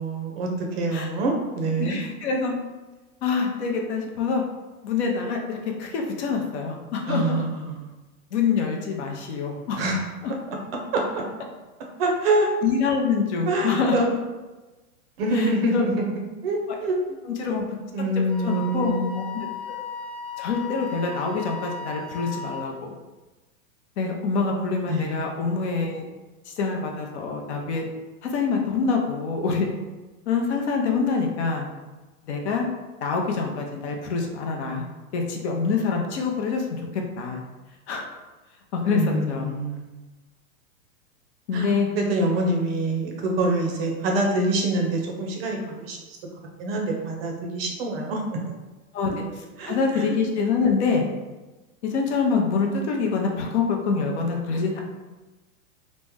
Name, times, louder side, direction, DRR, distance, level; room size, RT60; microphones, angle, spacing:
voice 1, 0.0-2.0 7.1-7.9 9.8-10.0 10.9-11.2 12.0-12.5 13.5-14.1 15.2-17.5 17.9-19.2 24.9-25.2 38.9-39.9 41.5-46.2 46.6-48.4 49.6-50.1, right 2 dB, 45° right, 1 dB, 0.6 m, -25 dB
voice 2, 1.8-2.5 3.2-4.4 4.8-7.3 8.3-9.8 10.2-10.3 12.6-13.9 15.3-15.8 17.3-17.6 18.2-19.5 20.4-22.9 24.0-26.0 26.5-27.8 28.2-29.7 30.3-31.7 32.3-32.6 33.0-34.9 35.1-37.4 37.9-38.0 38.7-39.5 41.5-41.9 48.9-51.0 51.8-54.8, left 5 dB, 50° left, 1 dB, 0.6 m, -25 dB
Wind instrument woodwind instrument, 18.3-22.7, left 4 dB, 5° left, 0.5 m, -36 dB
3.1 x 2.0 x 3.5 m, 1.2 s
supercardioid pair, 155°, 43 cm